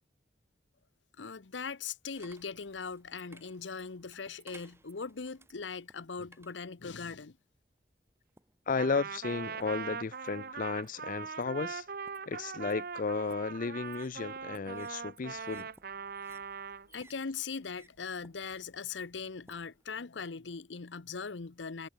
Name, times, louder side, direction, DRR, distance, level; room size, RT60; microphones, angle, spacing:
voice 1, 1.2-7.4 16.9-21.9, left 5 dB, 80° left, 0.8 m, -40 dB
sound 1, 2.1-7.4 8.1-8.7 9.3-9.9 10.3-19.9, right 2 dB, 15° right, 3.7 m, -61 dB
voice 2, 8.7-11.8 12.3-15.7, left 4 dB, 50° left, 0.5 m, -34 dB
Trumpet, 8.8-16.9, right 5 dB, 55° right, 1.2 m, -41 dB
head